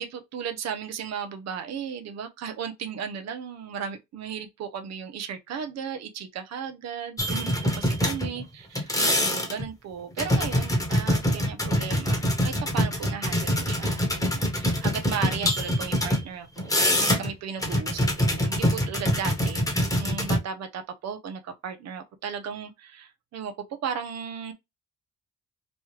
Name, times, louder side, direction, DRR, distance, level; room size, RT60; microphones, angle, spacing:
voice 1, 0.0-23.5 23.8-24.5, right 7 dB, 60° right, 0.7 m, -35 dB
sound 1, 7.2-8.4 8.7-9.7 10.2-16.2 16.6-17.3 17.6-20.4, equal, 10° left, 1.1 m, -25 dB
3.0 x 2.3 x 3.1 m
cardioid pair, 90°, 30 cm